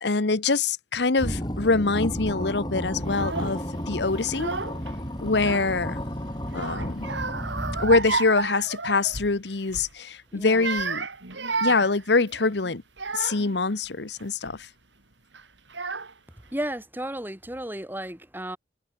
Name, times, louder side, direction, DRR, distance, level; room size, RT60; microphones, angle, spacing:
voice 1, 0.0-4.5 5.2-6.0 6.5-7.1 7.8-11.1 11.6-12.8 13.1-14.7, left 3 dB, 65° left, 1.0 m, -24 dB
sound 1, 1.2-8.4, equal, 25° left, 7.8 m, -32 dB
Child speech kid speaking / Crying sobbing, 3.1-3.6 4.2-4.9 5.2-6.0 6.5-9.4 9.7-9.9 10.4-13.6 14.2-14.6 15.3-15.4 15.7-16.4, right 4 dB, 80° right, 3.8 m, -32 dB
voice 2, 10.3-10.7 16.5-18.6, right 1 dB, 10° right, 3.4 m, -33 dB
head